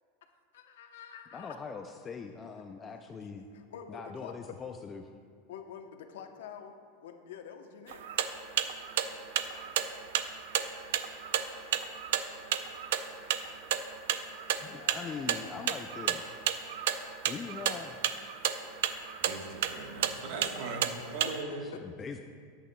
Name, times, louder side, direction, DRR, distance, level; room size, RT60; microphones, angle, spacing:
voice 1, 0.5-1.6 3.5-4.6 5.5-8.1 11.5-12.0 14.5-15.6 20.0-20.4 20.7-20.8 21.5-21.8, left 8 dB, 90° left, 6 dB, 0.8 m, -48 dB
voice 2, 1.3-3.5 3.9-5.1 14.6-16.4 17.3-18.1 21.6-22.2, left 5 dB, 20° left, 5 dB, 0.3 m, -42 dB
sound 1, 7.9-21.4, right 10 dB, 75° right, 0.5 m, -32 dB
voice 3, 19.2-21.7, right 3 dB, 55° right, 2 dB, 1.2 m, -39 dB
13.0 x 8.8 x 2.2 m, 2.1 s
supercardioid pair, 155°, 0 cm